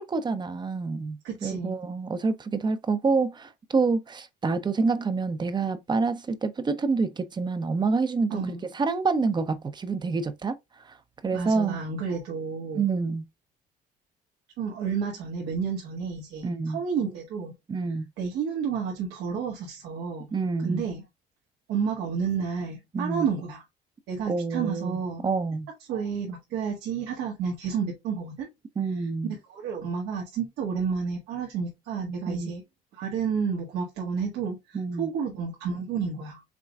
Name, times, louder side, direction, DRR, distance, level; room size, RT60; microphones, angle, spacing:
voice 1, 0.0-10.6 10.9-11.0 11.2-11.8 12.7-13.2 16.4-16.8 17.7-18.0 20.3-20.8 22.9-23.2 24.3-25.7 28.8-29.3 32.3-32.5 34.7-35.1, right 4 dB, 25° right, 0.7 m, -27 dB
voice 2, 1.2-1.7 8.3-8.6 11.3-12.9 14.6-17.5 18.2-20.3 20.6-21.0 21.7-23.6 24.1-25.2 25.9-28.5 29.0-32.6 32.9-36.4, right 6 dB, 85° right, 1.6 m, -31 dB
5.9 x 3.8 x 2.4 m
cardioid pair, 110°, 17 cm